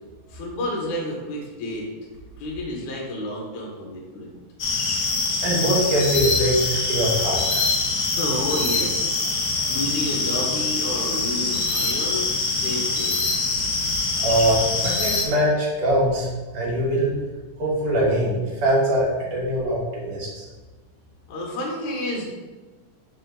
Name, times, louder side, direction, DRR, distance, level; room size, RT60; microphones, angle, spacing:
voice 1, 0.3-1.9 2.4-4.3 8.2-13.2 21.3-22.2, left 1 dB, 70° left, -2 dB, 2.4 m, -30 dB
sound 1, 4.6-15.2, left 3 dB, 90° left, 1.0 m, -24 dB
voice 2, 5.4-7.7 14.1-16.3 16.5-17.1 17.6-20.5, right 1 dB, 50° right, -5 dB, 2.3 m, -22 dB
5.2 x 5.0 x 3.8 m, 1.2 s
omnidirectional pair, 3.8 m